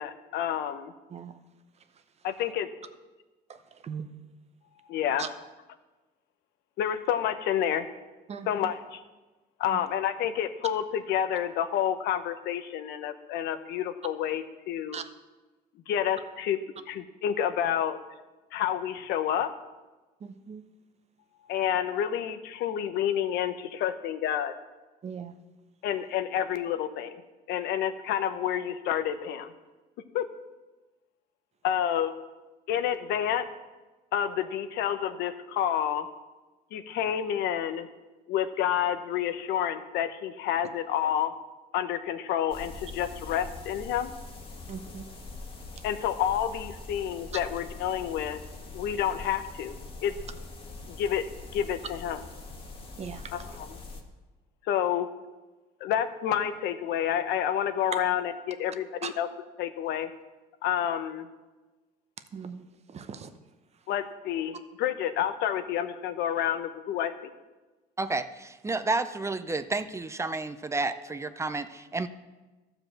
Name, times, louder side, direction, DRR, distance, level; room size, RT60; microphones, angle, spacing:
voice 1, 0.0-0.9 2.2-2.7 4.8-5.3 6.8-7.9 8.4-9.0 9.6-15.0 15.9-18.0 18.5-19.5 21.5-24.5 25.8-27.2 27.5-29.5 30.1-30.2 31.6-32.1 32.7-33.5 34.1-36.1 36.7-37.9 38.3-41.4 41.7-44.1 45.8-48.4 48.7-49.8 50.0-50.1 50.9-51.2 51.5-52.2 53.3-53.8 54.6-55.1 55.8-59.3 59.6-60.1 60.6-61.3 63.9-67.3, left 10 dB, 80° left, 10 dB, 0.8 m, -29 dB
voice 2, 20.2-20.6 25.0-25.3 44.7-45.0 53.0-53.3 59.0-59.1 62.3-62.7 62.9-63.3, right 6 dB, 40° right, 10 dB, 0.8 m, -38 dB
sound 1, 42.5-54.0, left 3 dB, 30° left, 1.6 m, -43 dB
voice 3, 68.0-72.1, right 3 dB, 15° right, 12 dB, 0.5 m, -31 dB
12.5 x 4.9 x 7.6 m, 1.2 s
cardioid pair, 110°, 17 cm